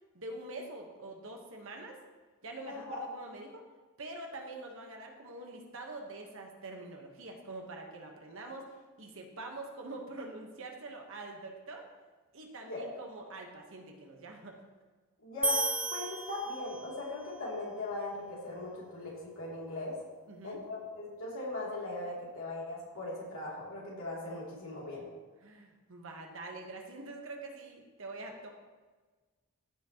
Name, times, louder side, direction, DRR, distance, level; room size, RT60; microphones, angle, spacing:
voice 1, 0.1-2.0 2.4-3.6 4.0-11.9 12.3-14.6 20.3-20.6 25.4-28.5, right 2 dB, 65° right, 2 dB, 1.4 m, -45 dB
voice 2, 2.7-3.0 12.6-12.9 15.2-15.6 15.9-20.0 20.4-25.1, left 2 dB, 65° left, -5 dB, 3.2 m, -39 dB
sound 1, 15.4-17.0, right 3 dB, 5° right, 0.4 m, -33 dB
15.0 x 6.0 x 3.1 m, 1.3 s
head